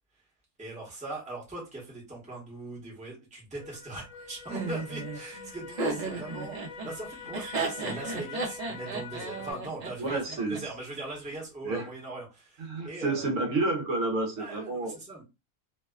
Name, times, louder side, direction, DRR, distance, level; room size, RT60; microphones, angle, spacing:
voice 1, 0.6-13.3 14.4-15.2, right 2 dB, 5° right, 0.8 m, -40 dB
sound 1, 3.6-9.5, left 6 dB, 75° left, 1.0 m, -45 dB
Laughter, 4.5-10.6, right 3 dB, 50° right, 0.5 m, -34 dB
voice 2, 10.0-10.6 11.6-11.9 12.6-15.0, right 2 dB, 70° right, 0.9 m, -30 dB
2.6 x 2.1 x 2.3 m
omnidirectional pair, 1.5 m